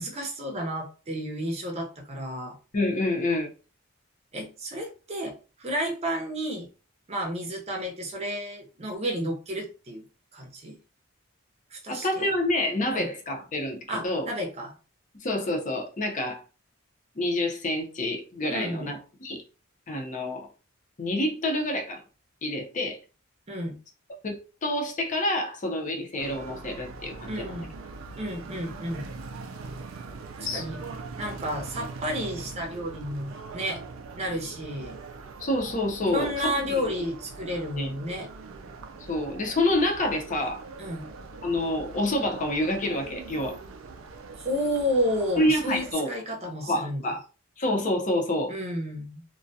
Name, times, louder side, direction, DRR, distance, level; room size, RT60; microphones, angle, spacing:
voice 1, 0.0-2.6 4.3-6.7 7.1-10.0 10.3-10.8 11.7-12.3 12.9-13.1 13.9-14.7 18.5-18.9 23.5-23.8 27.3-27.7 28.2-29.0 30.4-30.8 31.2-33.8 34.2-35.0 36.0-38.3 40.8-41.1 44.4-47.0 48.5-49.2, equal, 30° right, 0.6 m, -31 dB
voice 2, 2.7-3.5 11.9-13.8 14.0-14.3 15.2-16.4 17.2-19.4 19.9-20.5 21.0-22.0 22.4-23.0 24.2-27.5 30.4-30.6 35.4-36.6 37.7-37.9 39.1-40.6 41.4-43.6 45.4-46.1 46.7-47.2 47.6-48.5, left 1 dB, 40° left, 0.6 m, -27 dB
sound 1, 26.2-45.9, right 4 dB, 80° right, 0.4 m, -42 dB
2.3 x 2.2 x 2.6 m
head